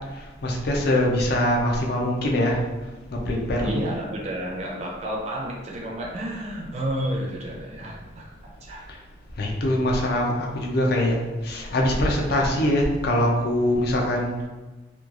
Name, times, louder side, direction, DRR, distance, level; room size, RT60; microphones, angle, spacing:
voice 1, 0.1-2.7 3.1-3.8 8.9-9.0 9.4-14.3, left 1 dB, 55° left, -1 dB, 0.5 m, -23 dB
voice 2, 3.6-8.8, right 1 dB, 35° right, -2 dB, 0.5 m, -31 dB
3.0 x 2.3 x 2.4 m, 1.2 s
head